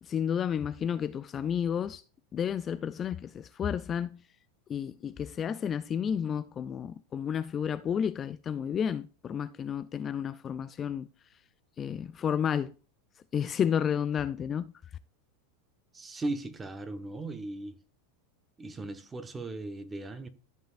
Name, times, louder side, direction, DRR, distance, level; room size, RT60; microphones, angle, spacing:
voice 1, 0.0-2.0 2.3-4.2 4.7-11.1 11.8-12.7 13.3-14.7, left 8 dB, 30° left, 0.4 m, -31 dB
voice 2, 15.9-17.8 18.6-20.3, right 2 dB, 15° right, 1.1 m, -37 dB
13.0 x 5.6 x 2.5 m
hypercardioid pair, 105°, 0 cm